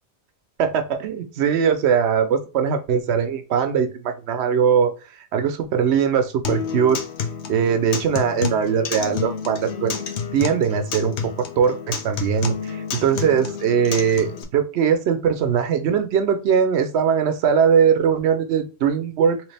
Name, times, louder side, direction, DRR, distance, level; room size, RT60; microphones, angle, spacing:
voice 1, 0.6-4.9 5.3-7.0 7.5-10.0 10.3-19.4, right 7 dB, 75° right, 8 dB, 0.9 m, -20 dB
Acoustic guitar, 6.4-14.4, left 7 dB, 80° left, 0.9 m, -30 dB
3.1 x 3.0 x 3.3 m, 0.32 s
omnidirectional pair, 1.1 m